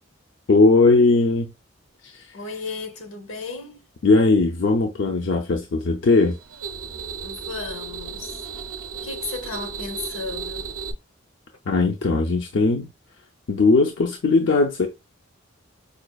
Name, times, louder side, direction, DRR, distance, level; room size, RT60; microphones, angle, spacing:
voice 1, 0.5-1.5 2.0-2.3 4.0-6.4 11.7-12.9 13.5-14.9, left 3 dB, 60° left, 0.4 m, -19 dB
voice 2, 2.3-3.8 7.2-8.4 9.0-10.7, left 4 dB, 80° left, 0.8 m, -34 dB
sound 1, 6.1-10.9, right 6 dB, 80° right, 0.5 m, -34 dB
4.9 x 2.3 x 2.2 m
head